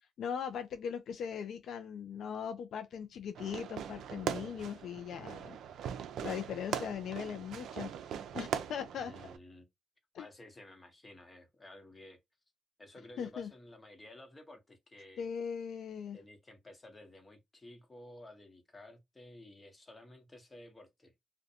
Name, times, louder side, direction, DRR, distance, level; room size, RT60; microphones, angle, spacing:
voice 1, 0.2-5.6 6.2-7.9 8.3-9.1 10.1-10.3 13.2-13.5 15.2-16.2, left 7 dB, 70° left, 0.3 m, -39 dB
Fireworks, 3.3-9.4, right 9 dB, 75° right, 0.4 m, -40 dB
voice 2, 9.0-9.7 10.2-12.2 12.8-15.3 16.1-21.1, left 1 dB, 20° left, 0.9 m, -53 dB
2.5 x 2.1 x 2.7 m
cardioid pair, 90°, 0 cm